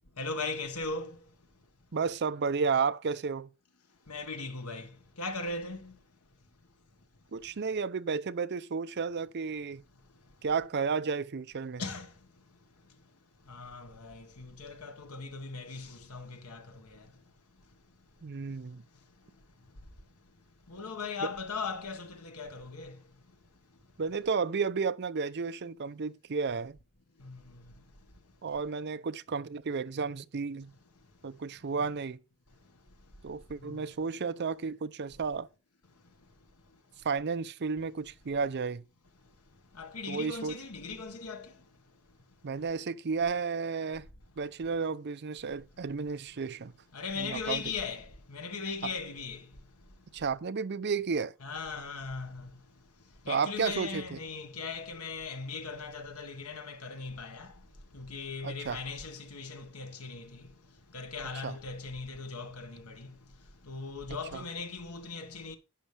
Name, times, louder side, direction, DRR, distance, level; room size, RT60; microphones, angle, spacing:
voice 1, 0.2-1.1 4.1-4.9 5.2-5.9 11.8-12.1 13.5-16.6 20.7-22.9 27.2-27.4 39.8-41.5 46.9-49.4 51.4-52.5 53.2-57.5 57.9-60.4 60.9-63.1 63.7-65.6, left 4 dB, 80° left, 1.5 m, -38 dB
voice 2, 1.9-3.5 7.3-9.8 10.4-11.8 18.2-18.8 24.0-26.8 28.4-30.7 31.2-32.2 33.2-35.5 37.0-38.8 40.1-40.6 42.4-44.1 44.4-46.7 47.1-47.6 50.1-51.3 53.3-54.2 58.4-58.8 61.4-61.5 64.3-64.4, right 5 dB, 50° right, 0.5 m, -32 dB
11.5 x 8.1 x 3.3 m
head